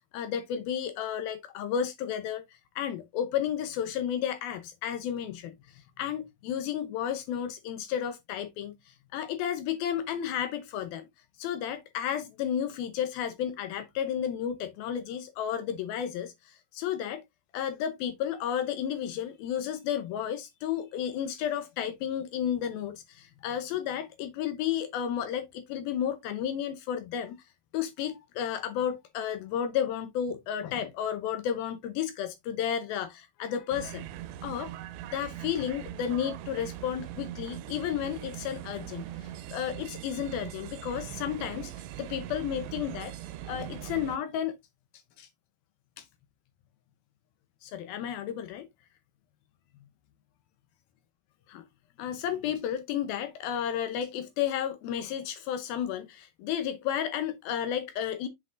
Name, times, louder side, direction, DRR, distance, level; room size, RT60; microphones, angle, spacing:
voice 1, 0.1-2.4 2.8-5.6 6.0-11.1 11.4-17.2 17.5-27.4 27.7-34.1 34.4-34.7 35.1-41.7 42.0-43.1 43.4-44.5 45.2-45.3 46.0-46.1 47.6-48.7 51.5-51.7 52.0-58.3, left 9 dB, 75° left, 2.3 m, -32 dB
sound 1, 33.7-44.2, right 12 dB, 85° right, 2.9 m, -41 dB
7.7 x 6.4 x 2.4 m
omnidirectional pair, 4.8 m